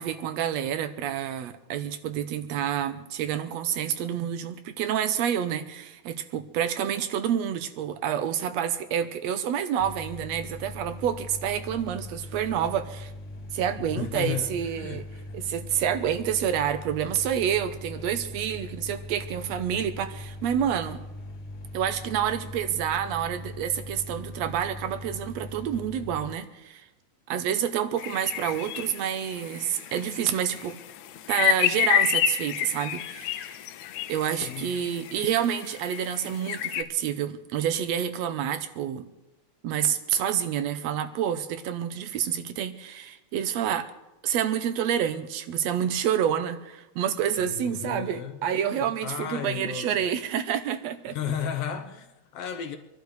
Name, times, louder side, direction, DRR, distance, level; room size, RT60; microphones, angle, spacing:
voice 1, 0.0-13.1 13.5-15.1 15.3-21.0 21.7-26.8 27.3-30.8 31.3-33.5 34.1-39.1 39.6-43.9 44.2-51.2, right 9 dB, 75° right, 2.0 m, -28 dB
sound 1, 9.8-26.3, left 1 dB, 35° left, 2.3 m, -40 dB
voice 2, 13.8-15.1 34.2-34.8 47.4-50.1 51.1-52.8, left 8 dB, 70° left, 1.6 m, -34 dB
sound 2, 28.0-36.8, left 11 dB, 85° left, 2.1 m, -30 dB
26.5 x 11.5 x 3.3 m
omnidirectional pair, 3.3 m